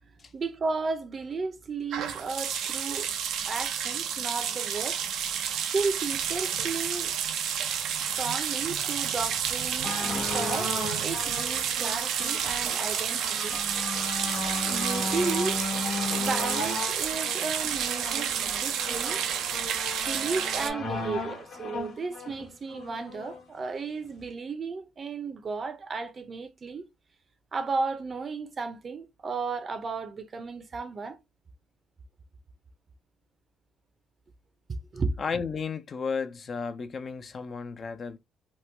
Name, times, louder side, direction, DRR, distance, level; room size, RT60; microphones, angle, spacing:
voice 1, 0.3-3.1 3.4-5.0 5.7-7.1 8.0-10.7 11.0-13.6 14.6-15.6 16.1-19.2 20.0-26.9 27.5-31.2 34.7-35.2, right 4 dB, 40° right, 0.6 m, -34 dB
sound 1, 1.9-20.7, right 8 dB, 80° right, 0.5 m, -30 dB
sound 2, 9.8-23.4 24.2-24.3, left 2 dB, 65° left, 1.1 m, -35 dB
voice 2, 35.2-38.2, left 5 dB, 40° left, 0.4 m, -33 dB
3.0 x 2.2 x 3.3 m
cardioid pair, 105°, 0 cm